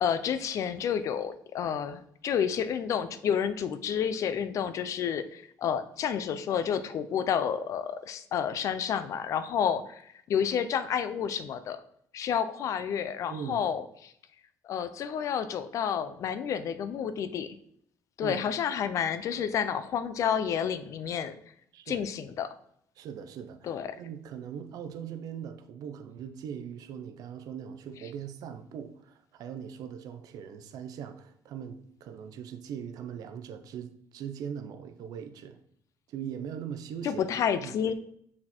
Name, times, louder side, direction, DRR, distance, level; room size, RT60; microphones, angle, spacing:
voice 1, 0.0-10.0 10.3-11.8 12.1-14.1 14.6-17.5 18.2-21.3 21.9-22.5 23.6-24.0 37.0-37.9, left 8 dB, 50° left, 0.5 m, -30 dB
voice 2, 13.3-13.7 18.2-18.4 21.7-22.0 23.0-35.6 36.1-37.3 37.6-37.7, right 8 dB, 65° right, 0.7 m, -40 dB
6.4 x 4.3 x 4.3 m
cardioid pair, 165°, 7 cm